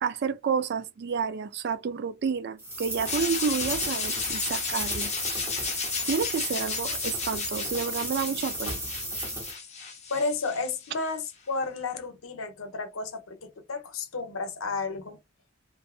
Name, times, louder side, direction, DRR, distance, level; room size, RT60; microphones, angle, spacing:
voice 1, 0.0-5.1 6.1-8.8, right 6 dB, 50° right, 0.3 m, -30 dB
sound 1, 2.6-9.5, right 1 dB, 10° right, 0.7 m, -34 dB
sound 2, 3.1-11.1, left 5 dB, 30° left, 0.6 m, -34 dB
voice 2, 10.1-15.2, left 3 dB, 70° left, 0.7 m, -32 dB
2.6 x 2.4 x 2.4 m
head